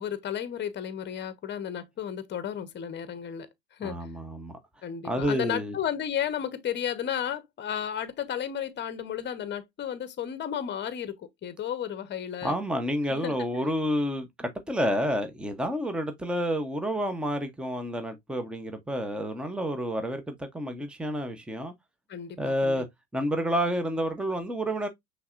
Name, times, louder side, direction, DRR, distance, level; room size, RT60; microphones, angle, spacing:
voice 1, 0.0-4.1 4.8-12.5 13.1-13.7 22.1-22.8, left 9 dB, 30° left, 1.0 m, -33 dB
voice 2, 3.8-4.6 5.0-5.7 12.4-21.7 22.4-22.8 23.1-24.9, equal, 5° right, 0.9 m, -29 dB
5.7 x 3.4 x 2.5 m
supercardioid pair, 105°, 37 cm